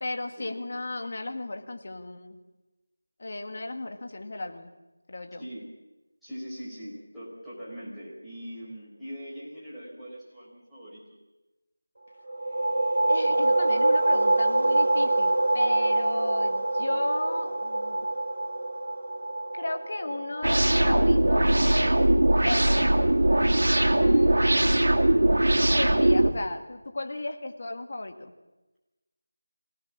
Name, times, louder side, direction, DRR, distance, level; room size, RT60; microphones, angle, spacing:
voice 1, 0.0-2.4 3.2-4.7 5.1-5.4 13.1-18.1 19.5-22.0 22.4-23.2 23.9-24.4 25.6-28.3, left 2 dB, 40° left, 6 dB, 1.9 m, -35 dB
voice 2, 5.4-5.7 6.2-11.2 23.9-24.6, equal, ahead, -14 dB, 4.5 m, -42 dB
sound 1, 12.3-21.7, right 2 dB, 65° right, 2.3 m, -25 dB
sound 2, 20.4-26.3, right 1 dB, 85° right, 2.8 m, -21 dB
25.0 x 17.5 x 7.4 m, 1.1 s
figure-of-eight pair, 175°, 0 cm